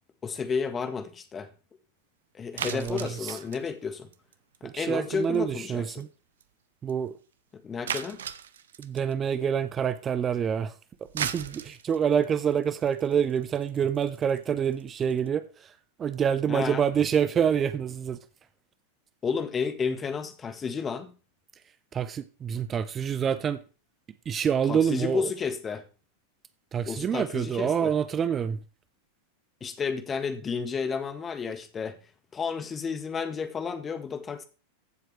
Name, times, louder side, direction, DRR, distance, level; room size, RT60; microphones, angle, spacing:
voice 1, 0.2-1.5 2.3-4.1 4.8-6.0 7.6-8.2 16.5-16.9 19.2-21.1 24.7-25.8 26.9-27.9 29.6-32.0 32.3-34.4, left 5 dB, 20° left, 1.4 m, -31 dB
voice 2, 2.6-3.4 4.6-6.1 6.8-7.1 8.8-10.7 11.1-15.7 16.0-18.2 21.9-23.6 24.3-25.3 26.7-28.6, right 8 dB, 25° right, 0.6 m, -27 dB
sound 1, 2.6-4.8 5.1-5.4 5.7-5.8 6.0-6.1 6.4-6.5 6.9-7.0 7.9-9.1 10.9-15.3, right 9 dB, 65° right, 0.7 m, -36 dB
15.0 x 7.5 x 3.3 m
figure-of-eight pair, 90°, 0 cm